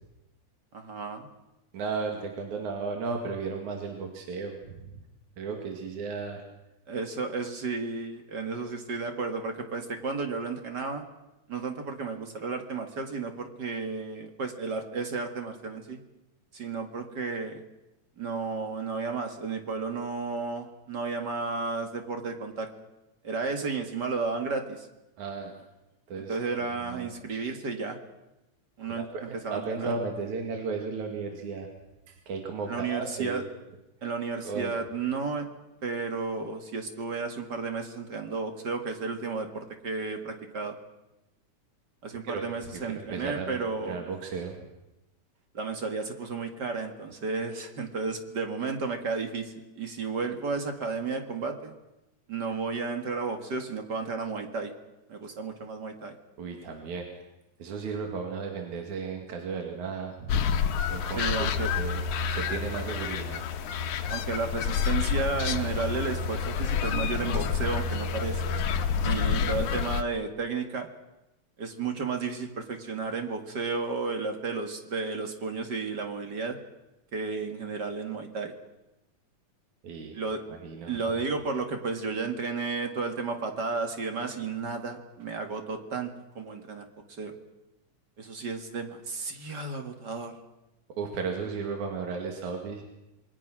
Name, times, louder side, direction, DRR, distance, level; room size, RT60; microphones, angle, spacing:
voice 1, 0.7-1.3 6.9-11.0 11.5-16.0 16.5-17.6 18.2-22.7 23.2-24.9 26.1-28.0 28.8-29.9 32.7-33.4 34.0-35.5 35.8-40.8 42.0-44.0 45.5-51.7 52.3-54.7 55.1-56.2 61.1-61.7 64.1-68.4 69.0-70.9 71.6-76.6 77.1-78.5 80.1-80.4 80.9-86.9 87.2-87.4 88.2-90.3, right 4 dB, 40° right, 5 dB, 2.1 m, -33 dB
voice 2, 1.7-4.9 5.4-6.4 25.2-25.5 26.1-26.4 26.9-27.4 28.9-31.7 32.1-33.4 34.4-34.7 42.2-42.4 42.7-43.6 43.9-44.6 56.4-57.1 57.6-60.5 60.9-61.2 61.6-63.5 79.8-80.2 80.5-81.1 91.0-92.8, right 4 dB, 75° right, 2 dB, 3.6 m, -35 dB
sound 1, 60.3-70.0, left 6 dB, 80° left, 2.6 m, -28 dB
27.0 x 22.5 x 6.1 m, 0.96 s
omnidirectional pair, 3.4 m